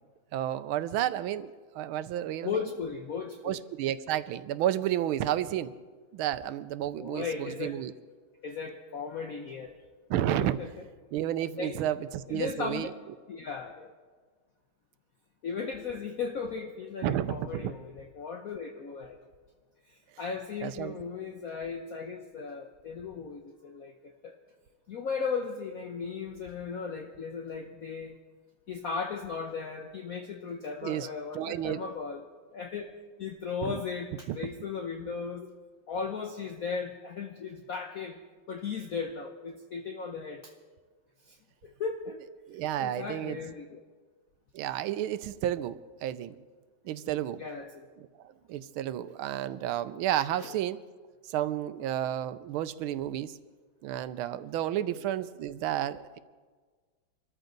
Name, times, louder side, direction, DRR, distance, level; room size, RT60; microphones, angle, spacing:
voice 1, 0.3-2.6 3.4-5.7 6.1-7.2 7.6-7.9 10.1-10.6 11.1-12.9 17.0-17.7 20.6-21.0 30.8-31.1 31.3-31.8 33.6-33.8 34.3-34.4 42.5-43.4 44.5-46.4 46.8-47.4 48.0-50.8 51.3-53.4 53.8-56.2, right 12 dB, 85° right, 13 dB, 1.5 m, -31 dB
voice 2, 2.4-3.6 6.9-7.8 8.4-9.7 10.4-10.9 11.6-11.8 12.3-12.9 13.3-13.9 15.4-19.3 19.8-24.3 24.9-28.2 28.7-32.2 32.5-35.5 35.9-38.2 38.5-40.5 41.2-41.4 41.6-42.2 42.8-43.8 47.0-47.9 50.4-50.5 54.8-55.0, left 5 dB, 55° left, 4 dB, 1.1 m, -36 dB
25.5 x 14.0 x 4.0 m, 1.5 s
omnidirectional pair, 2.2 m